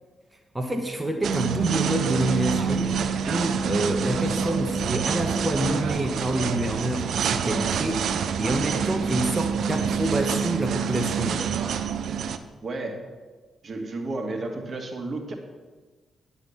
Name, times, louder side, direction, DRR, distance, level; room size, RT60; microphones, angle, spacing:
voice 1, 0.5-3.0 3.3-11.5, right 1 dB, 20° right, 4 dB, 1.3 m, -27 dB
sound 1, 1.2-12.4, right 7 dB, 70° right, 0.5 m, -27 dB
voice 2, 12.6-13.0 13.6-15.4, right 2 dB, 50° right, 4 dB, 1.7 m, -32 dB
10.5 x 7.3 x 5.7 m, 1.3 s
hypercardioid pair, 40°, 0 cm